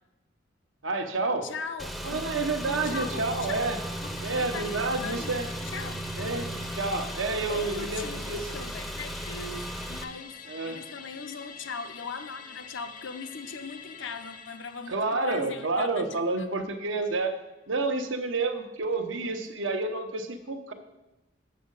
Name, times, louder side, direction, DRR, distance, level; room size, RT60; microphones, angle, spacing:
voice 1, 0.8-1.5 2.0-3.8 4.2-5.5 6.2-6.5 6.8-8.5 10.5-10.8 14.9-17.3 17.7-20.7, right 3 dB, 90° right, 6 dB, 0.9 m, -29 dB
voice 2, 1.4-2.4 2.8-3.6 4.0-6.0 7.5-10.3 10.6-16.5, left 4 dB, 80° left, 9 dB, 0.7 m, -40 dB
Car / Engine, 1.8-10.0, right 1 dB, ahead, 0.5 m, -36 dB
Musical instrument, 2.6-17.3 17.6-17.7, left 5 dB, 45° left, 0.6 m, -47 dB
7.7 x 7.3 x 5.5 m, 0.98 s
head